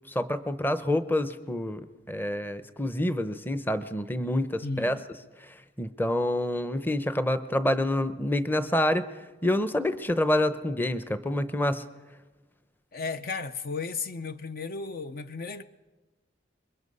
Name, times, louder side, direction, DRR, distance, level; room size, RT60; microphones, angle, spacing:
voice 1, 0.1-1.8 2.1-5.0 5.8-9.1 9.4-11.8, left 1 dB, 10° left, 0.8 m, -27 dB
voice 2, 4.6-5.0 12.9-15.6, left 4 dB, 55° left, 0.6 m, -34 dB
27.0 x 22.0 x 5.4 m
head